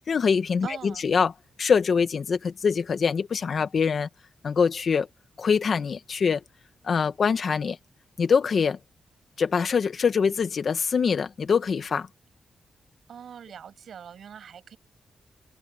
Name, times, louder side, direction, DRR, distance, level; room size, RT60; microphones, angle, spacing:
voice 1, 0.1-1.3 1.6-4.1 4.4-5.1 5.4-6.4 6.8-7.8 8.2-8.8 9.4-12.1, left 6 dB, 55° left, 1.4 m, -24 dB
voice 2, 0.6-1.0 13.1-14.8, right 8 dB, 75° right, 6.8 m, -42 dB
open air
wide cardioid pair, 120°, 0 cm